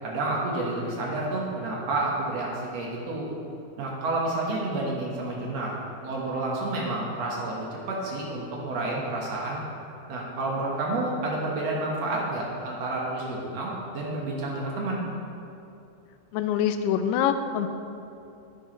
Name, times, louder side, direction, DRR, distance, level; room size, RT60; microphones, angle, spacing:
voice 1, 0.0-3.3 3.8-5.7 6.0-9.6 10.1-15.0, right 2 dB, 60° right, -3 dB, 1.8 m, -30 dB
voice 2, 16.3-17.7, left 9 dB, 85° left, 8 dB, 2.6 m, -25 dB
10.5 x 10.5 x 3.1 m, 2.8 s
omnidirectional pair, 4.6 m